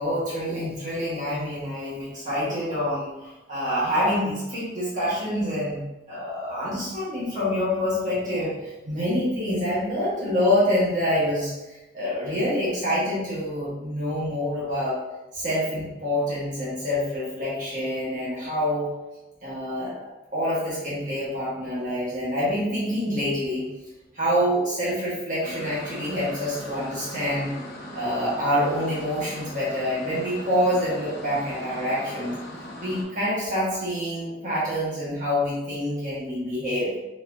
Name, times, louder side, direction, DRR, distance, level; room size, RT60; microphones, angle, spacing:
voice 1, 0.0-15.0 15.3-18.9 19.4-23.7 24.1-27.5 27.9-32.3 32.8-36.9, equal, 40° right, -8 dB, 1.3 m, -26 dB
sound 1, 25.4-33.0, left 1 dB, 50° left, 1.1 m, -39 dB
4.2 x 4.2 x 2.5 m, 1.0 s
head